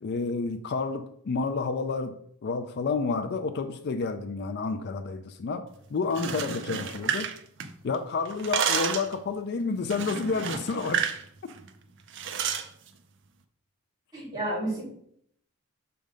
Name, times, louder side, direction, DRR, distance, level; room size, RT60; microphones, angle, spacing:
voice 1, 0.0-2.2 2.4-5.6 5.9-7.3 7.8-11.1, left 4 dB, 50° left, 9 dB, 0.4 m, -30 dB
sound 1, 6.0-8.0 8.3-9.2 9.9-11.2 11.5-11.7 12.1-12.7, right 7 dB, 55° right, 0.5 m, -30 dB
voice 2, 14.1-14.9, right 1 dB, 20° right, -6 dB, 2.6 m, -31 dB
6.3 x 3.4 x 5.1 m, 0.68 s
head